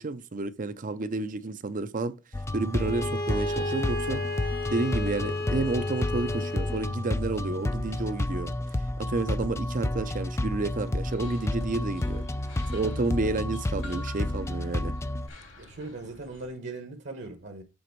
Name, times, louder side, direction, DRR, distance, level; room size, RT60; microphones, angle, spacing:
voice 1, 0.0-2.1 2.5-4.2 4.7-8.5 9.0-12.3 12.7-14.9, right 3 dB, 40° right, 0.6 m, -30 dB
sound 1, 2.3-15.3, left 1 dB, 15° left, 0.3 m, -31 dB
Bowed string instrument, 2.8-7.0, left 2 dB, 50° left, 0.9 m, -33 dB
sound 2, 10.8-16.5, left 2 dB, 80° left, 2.9 m, -50 dB
voice 2, 15.5-17.6, right 2 dB, 60° right, 1.2 m, -39 dB
7.9 x 4.1 x 4.6 m
head